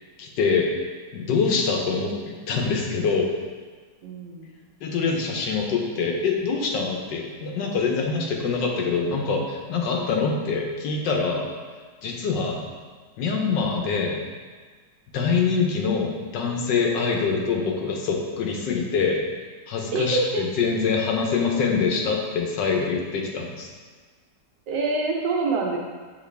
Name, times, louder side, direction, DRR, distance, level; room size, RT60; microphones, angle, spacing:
voice 1, 0.2-0.7 1.1-3.3 4.8-11.5 12.0-12.7 13.2-14.2 15.1-19.2 19.7-23.7, left 5 dB, 80° left, 1 dB, 1.5 m, -24 dB
voice 2, 4.0-4.5 19.9-20.4 24.7-25.8, right 3 dB, 75° right, 0 dB, 1.4 m, -25 dB
7.4 x 3.9 x 3.3 m, 1.5 s
omnidirectional pair, 1.9 m